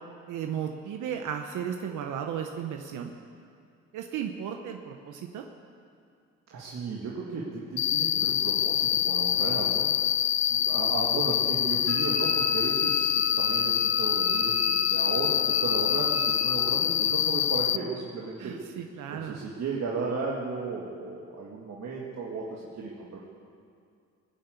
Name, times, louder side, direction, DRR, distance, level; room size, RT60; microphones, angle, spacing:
voice 1, 0.3-3.1 3.9-5.4 18.4-19.4, right 8 dB, 80° right, 4 dB, 0.9 m, -35 dB
voice 2, 6.5-10.2 10.5-18.6 19.1-23.2, right 4 dB, 60° right, -3 dB, 2.0 m, -34 dB
Cricket, 7.8-17.8, left 11 dB, 60° left, 0.6 m, -25 dB
Wind instrument woodwind instrument, 11.9-16.5, right 2 dB, 30° right, 2.5 m, -36 dB
21.0 x 7.9 x 8.2 m, 2.3 s
cardioid pair, 90°, 30 cm